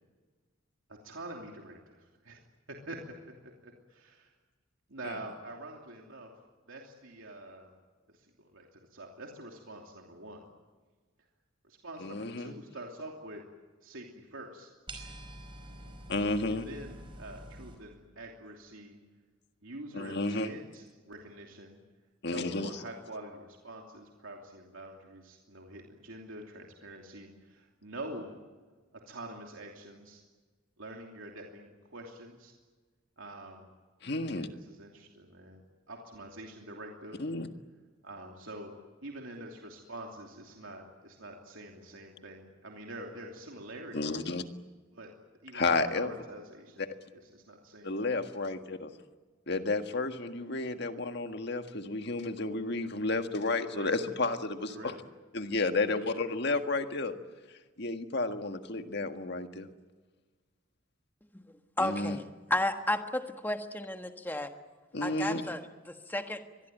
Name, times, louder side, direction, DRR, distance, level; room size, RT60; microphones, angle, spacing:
voice 1, 0.9-2.4 2.7-3.0 3.3-4.3 4.9-6.3 6.7-7.7 8.1-10.5 11.6-13.4 13.8-14.7 16.5-19.0 19.6-21.8 22.3-28.3 29.1-30.2 30.8-32.5 33.2-33.7 34.3-35.6 35.9-37.3 38.0-38.7 39.0-44.1 44.9-45.1 45.4-48.0 53.7-53.9 54.7-54.9, right 1 dB, 80° right, 1 dB, 3.0 m, -46 dB
voice 2, 12.0-12.5 16.1-16.7 19.9-20.5 22.2-22.7 34.0-34.5 37.2-37.5 43.9-44.4 45.5-46.1 46.8-46.9 47.8-48.9 49.5-54.9 55.3-57.1 57.8-59.7 61.8-62.2 64.9-65.4, left 3 dB, 55° left, 7 dB, 1.7 m, -32 dB
sound 1, 14.9-17.7, right 1 dB, 25° right, 4.9 m, -46 dB
voice 3, 61.8-62.2 62.5-64.5 65.0-66.4, left 1 dB, 10° left, 6 dB, 1.5 m, -32 dB
24.5 x 21.0 x 9.2 m, 1.4 s
head